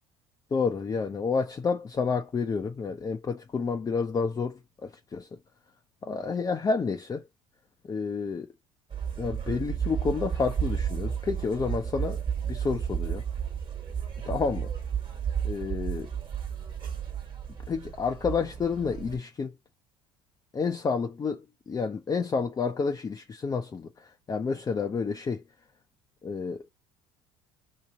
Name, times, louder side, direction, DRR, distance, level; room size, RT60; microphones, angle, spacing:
voice 1, 0.5-5.3 6.0-7.2 7.8-8.5 9.2-13.2 14.2-14.7 15.4-16.1 17.7-19.5 20.5-25.4 26.2-26.6, left 5 dB, 25° left, 0.6 m, -30 dB
sound 1, 8.9-19.2, right 8 dB, 35° right, 1.5 m, -32 dB
2.9 x 2.6 x 3.9 m
supercardioid pair, 80°, 15 cm